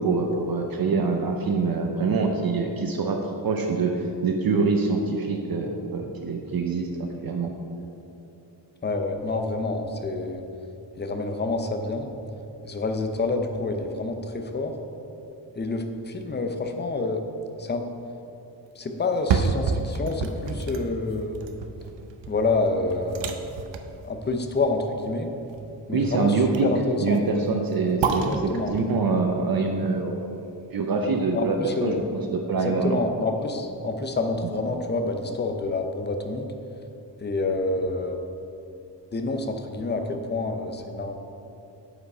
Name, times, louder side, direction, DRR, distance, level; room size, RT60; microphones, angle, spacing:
voice 1, 0.0-7.5 25.9-26.7 27.0-30.2 30.7-31.6 31.8-33.0, right 4 dB, 55° right, 3 dB, 0.6 m, -25 dB
voice 2, 8.8-10.4 11.0-12.1 12.6-14.7 15.6-17.2 17.5-17.8 18.8-21.4 22.3-23.4 24.0-25.3 25.9-26.4 26.6-27.2 28.2-28.7 31.3-32.0 32.6-36.5 37.2-38.2 39.1-41.1, left 3 dB, 25° left, 5 dB, 0.5 m, -28 dB
sound 1, 19.0-31.1 31.5-31.6, right 5 dB, 90° right, 0.7 m, -31 dB
8.0 x 5.0 x 5.5 m, 2.8 s
wide cardioid pair, 165°, 43 cm